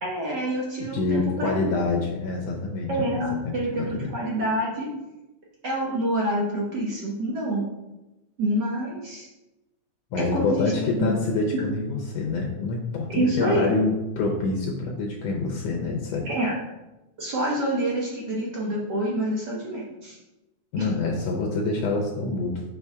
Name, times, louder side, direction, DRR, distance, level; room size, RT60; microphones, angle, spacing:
voice 1, 0.0-1.8 2.9-4.9 5.6-7.7 8.4-9.3 10.2-11.1 13.1-13.7 16.2-16.5 17.2-20.2 20.8-20.9, right 1 dB, 65° right, -4 dB, 1.0 m, -27 dB
voice 2, 0.8-3.1 3.4-4.1 10.1-16.3 18.2-18.3 20.7-22.6, left 3 dB, 70° left, 0 dB, 1.7 m, -26 dB
5.8 x 5.6 x 3.6 m, 1.0 s
omnidirectional pair, 3.3 m